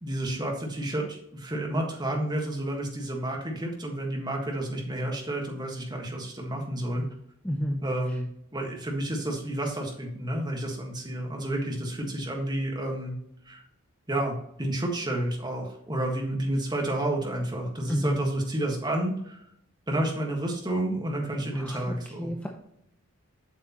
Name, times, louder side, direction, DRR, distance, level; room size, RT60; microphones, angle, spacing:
voice 1, 0.0-7.0 7.8-8.3 8.5-13.1 13.4-13.6 14.1-19.4 19.9-22.3, right 1 dB, 20° right, 0 dB, 1.5 m, -30 dB
voice 2, 7.4-7.8 17.9-18.3 21.5-22.5, equal, 5° left, 1 dB, 0.6 m, -30 dB
7.6 x 6.5 x 3.0 m, 0.74 s
head